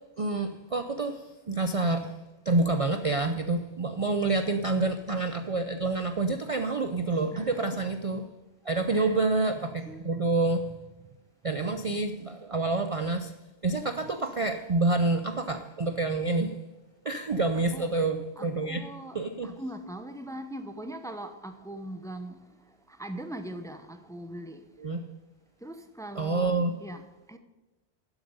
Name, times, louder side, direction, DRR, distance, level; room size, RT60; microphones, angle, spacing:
voice 1, 0.2-2.2 2.5-8.2 8.7-10.7 11.4-13.3 13.6-16.6 17.0-18.8 19.1-19.5 24.8-25.0 26.2-26.7, right 3 dB, 40° right, 0.6 m, -28 dB
voice 2, 8.7-9.2 9.9-10.0 17.5-17.9 18.4-22.4 22.9-24.6 25.6-26.5 26.8-27.4, right 1 dB, 5° left, 0.7 m, -41 dB
12.0 x 7.8 x 5.4 m
omnidirectional pair, 1.1 m